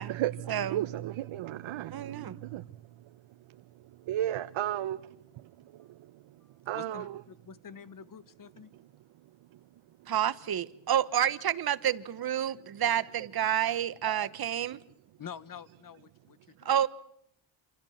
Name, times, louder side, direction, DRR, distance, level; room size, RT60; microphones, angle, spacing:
voice 1, 0.0-7.2 8.7-8.9 9.2-9.7 10.0-10.1 13.7-13.8 14.1-14.3 16.6-16.7, right 13 dB, 85° right, 1.0 m, -36 dB
voice 2, 1.9-2.4 10.1-14.8 16.6-16.9, right 10 dB, 50° right, 1.3 m, -29 dB
voice 3, 6.7-8.7 15.2-16.7, left 7 dB, 45° left, 1.5 m, -47 dB
28.0 x 27.5 x 5.9 m
cardioid pair, 135°, 47 cm